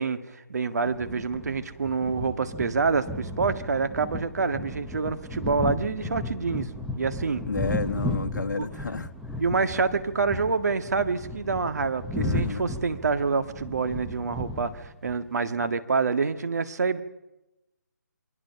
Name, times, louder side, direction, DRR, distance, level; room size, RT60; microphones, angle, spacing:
voice 1, 0.0-7.4 8.6-8.7 9.4-17.0, right 4 dB, 60° right, 9 dB, 1.7 m, -27 dB
sound 1, 0.9-15.2, left 1 dB, ahead, 0.8 m, -35 dB
voice 2, 7.5-9.1 12.2-12.7, left 4 dB, 75° left, 7 dB, 1.3 m, -31 dB
28.0 x 22.0 x 5.8 m, 0.95 s
hypercardioid pair, 165°, 10 cm